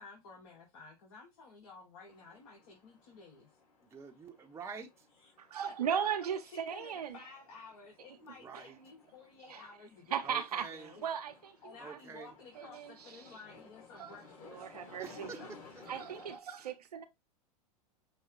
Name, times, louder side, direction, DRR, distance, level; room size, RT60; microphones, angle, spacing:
voice 1, 0.0-3.5 5.2-5.3 5.6-11.1 11.6-15.5, left 4 dB, 60° left, 1.9 m, -53 dB
sound 1, 2.1-16.4, left 4 dB, 40° left, 2.1 m, -58 dB
voice 2, 3.8-4.9 8.2-8.8 10.2-10.9 11.8-12.3 15.0-15.5, right 5 dB, 15° right, 0.8 m, -47 dB
voice 3, 5.4-7.2 8.5-8.6 9.5-9.6 10.1-11.6 11.9-12.2 12.5-13.2 13.9-14.2 14.4-15.4 15.9-17.0, right 8 dB, 85° right, 0.8 m, -37 dB
6.2 x 2.4 x 3.0 m
hypercardioid pair, 105°, 19 cm